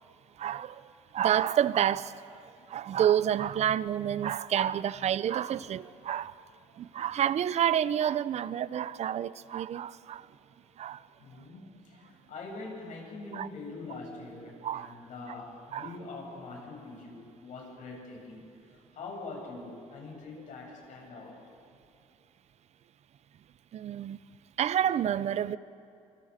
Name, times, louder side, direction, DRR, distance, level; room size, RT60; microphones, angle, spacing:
voice 1, 0.4-0.7 1.1-2.1 2.7-6.3 6.8-10.2 10.8-11.0 13.3-13.5 14.6-14.9 15.7-15.9 23.7-24.2 24.6-25.6, right 10 dB, 55° right, 0.6 m, -28 dB
voice 2, 11.2-21.4, left 3 dB, 65° left, 7.5 m, -44 dB
27.0 x 24.0 x 5.1 m
cardioid pair, 105°, 14 cm